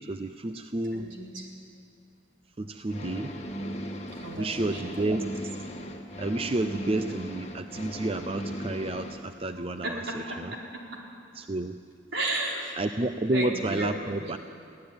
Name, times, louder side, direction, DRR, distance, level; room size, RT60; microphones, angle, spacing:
voice 1, 0.1-1.1 2.6-3.3 4.4-5.3 6.2-10.5 11.3-11.7 12.8-14.4, right 2 dB, 30° right, 9 dB, 0.5 m, -30 dB
voice 2, 0.9-1.5 4.1-5.2 9.8-10.4 10.7-11.0 12.1-12.8 13.3-14.1, right 1 dB, 70° right, -2 dB, 4.4 m, -34 dB
sound 1, 2.9-9.2, equal, 35° left, 1.8 m, -37 dB
24.0 x 16.0 x 9.5 m, 2.4 s
head